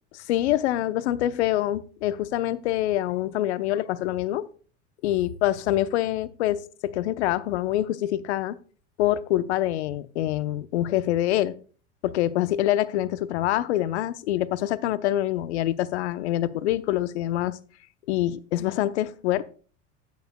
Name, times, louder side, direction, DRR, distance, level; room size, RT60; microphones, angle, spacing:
voice 1, 0.1-4.5 5.0-8.6 9.0-11.6 12.0-17.6 18.1-19.4, left 13 dB, 75° left, 0.8 m, -25 dB
14.0 x 9.6 x 2.2 m
hypercardioid pair, 95°, 34 cm